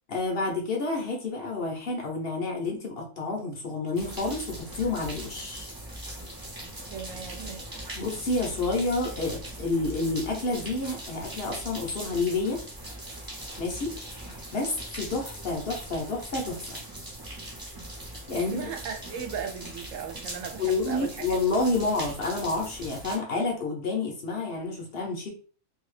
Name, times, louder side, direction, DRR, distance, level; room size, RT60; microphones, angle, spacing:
voice 1, 0.1-5.7 7.9-12.6 13.6-16.8 18.3-18.6 20.6-25.3, left 3 dB, 50° left, 0.8 m, -29 dB
sound 1, 4.0-23.2, right 1 dB, 25° right, 0.5 m, -40 dB
voice 2, 6.9-7.7 18.3-21.4, right 7 dB, 65° right, 0.8 m, -37 dB
2.8 x 2.7 x 3.1 m
omnidirectional pair, 1.6 m